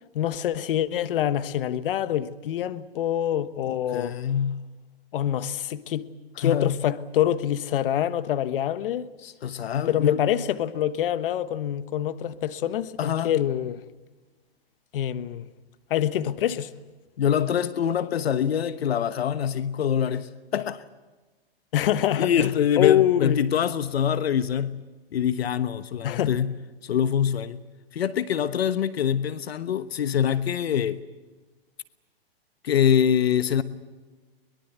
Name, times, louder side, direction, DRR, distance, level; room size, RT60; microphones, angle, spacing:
voice 1, 0.1-4.2 5.1-6.1 6.4-9.1 9.9-13.8 14.9-15.5 15.9-16.7 21.7-23.4 26.0-26.4, left 11 dB, 60° left, 1.3 m, -25 dB
voice 2, 3.6-4.6 6.4-6.8 9.2-10.2 13.0-13.3 17.2-20.8 22.2-24.8 25.1-26.5 26.8-27.6 27.9-31.0 32.6-33.6, left 9 dB, 80° left, 1.3 m, -24 dB
23.5 x 22.0 x 8.2 m
hypercardioid pair, 140°, 31 cm